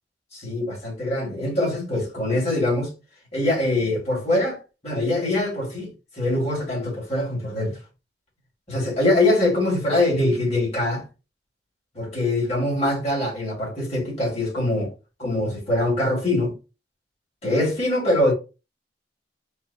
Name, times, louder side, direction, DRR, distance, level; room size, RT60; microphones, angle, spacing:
voice 1, 0.3-2.9 3.3-7.8 8.7-11.0 11.9-14.9 15.2-16.6 17.4-18.3, left 1 dB, 35° left, 2.5 m, -23 dB
4.7 x 2.3 x 4.2 m
head